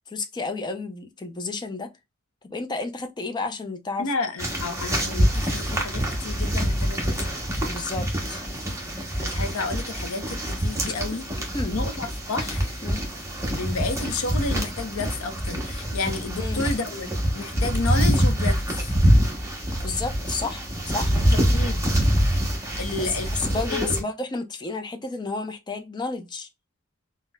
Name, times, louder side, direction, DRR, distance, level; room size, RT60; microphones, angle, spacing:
voice 1, 0.1-1.9 2.5-4.1 7.7-8.4 11.5-11.8 12.8-13.0 16.4-16.6 19.8-21.2 23.0-23.1 23.5-26.5, left 3 dB, 20° left, 0.5 m, -31 dB
voice 2, 4.0-7.3 9.2-11.3 11.7-12.8 13.5-17.1 17.3-19.0 21.5-21.8 22.8-24.0, left 3 dB, 85° left, 0.7 m, -31 dB
sound 1, 4.4-24.0, equal, 15° right, 0.8 m, -25 dB
3.9 x 2.1 x 2.2 m
head